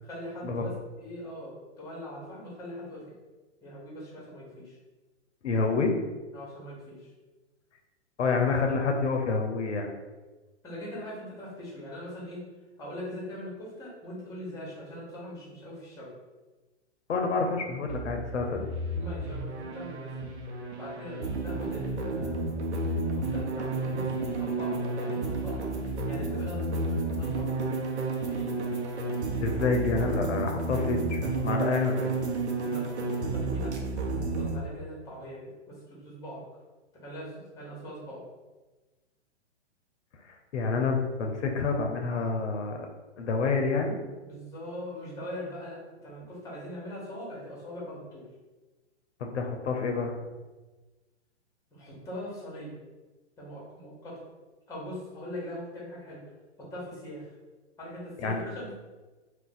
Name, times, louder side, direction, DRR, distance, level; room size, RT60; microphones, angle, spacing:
voice 1, 0.0-3.0 3.6-4.8 6.3-7.1 10.6-12.5 12.8-16.1 19.0-20.1 20.8-22.5 23.1-25.7 26.0-27.9 28.2-28.5 32.6-33.7 34.3-36.4 36.9-38.2 44.2-48.3 51.7-52.8 53.4-54.2 54.7-56.2 56.6-57.3 57.8-58.7, equal, 10° left, -5 dB, 1.1 m, -41 dB
voice 2, 5.4-6.0 8.2-9.9 17.1-18.7 23.9-24.4 29.4-32.2 40.2-42.9 43.2-44.0 49.2-50.2 58.2-58.4, left 4 dB, 75° left, 3 dB, 0.6 m, -28 dB
sound 1, 17.9-34.6, right 2 dB, 70° right, 0.7 m, -31 dB
2.5 x 2.3 x 3.9 m, 1.2 s
hypercardioid pair, 120°, 35 cm